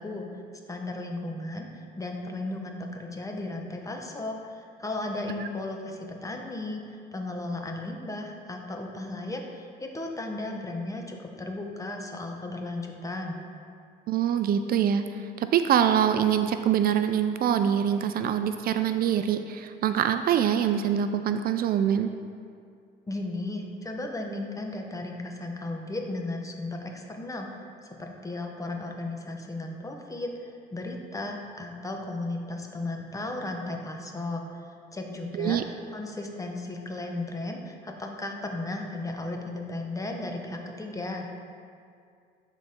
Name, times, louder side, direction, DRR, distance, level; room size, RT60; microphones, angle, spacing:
voice 1, 0.0-13.4 23.1-41.3, left 2 dB, 20° left, 2 dB, 0.9 m, -35 dB
voice 2, 14.1-15.0 15.4-22.1 35.4-35.6, right 9 dB, 60° right, 9 dB, 0.4 m, -24 dB
10.5 x 4.1 x 3.6 m, 2.3 s
cardioid pair, 90°, 18 cm